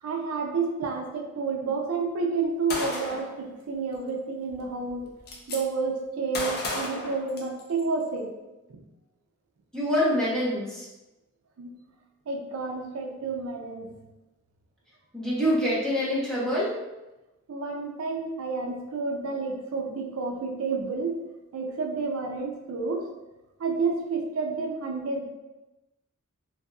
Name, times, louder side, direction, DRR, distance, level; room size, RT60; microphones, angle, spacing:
voice 1, 0.0-5.1 5.5-8.3 8.7-8.8 11.6-11.8 12.3-14.0 17.5-21.2 21.5-23.1 23.6-25.3, right 4 dB, 75° right, 2 dB, 0.4 m, -30 dB
Gunshot gunfire, 2.7-3.3 4.5-4.6 4.9-5.6 6.3-7.8, left 2 dB, 50° left, 0.5 m, -33 dB
voice 2, 9.7-10.9 15.1-16.7, equal, 5° left, -9 dB, 0.9 m, -25 dB
2.6 x 2.6 x 2.3 m, 1.0 s
head